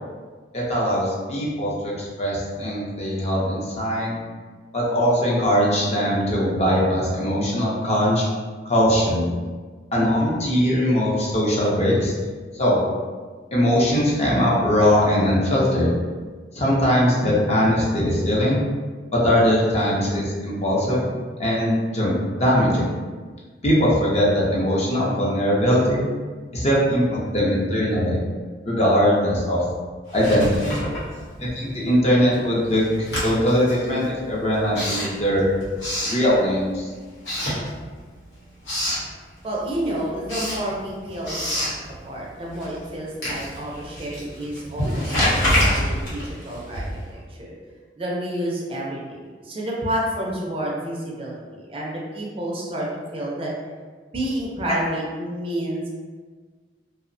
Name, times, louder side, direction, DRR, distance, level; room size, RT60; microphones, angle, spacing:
voice 1, 0.5-4.2 4.7-8.2 8.7-9.3 9.9-12.1 12.6-12.8 13.5-15.9 16.5-18.6 19.1-21.1 21.4-22.9 23.6-26.0 26.5-28.2 28.6-29.6 30.1-30.8 31.4-35.4 36.0-36.9 54.7-54.8, equal, 35° left, -5 dB, 0.6 m, -21 dB
Writing, 30.1-31.7 32.0-36.8 37.2-38.2 38.4-39.1 39.5-47.2, equal, 85° left, 1.0 m, -27 dB
voice 2, 39.4-41.7 42.0-46.8 47.1-47.6 47.9-53.5 54.1-55.9, right 1 dB, 30° right, -4 dB, 0.4 m, -30 dB
2.7 x 2.0 x 2.6 m, 1.5 s
head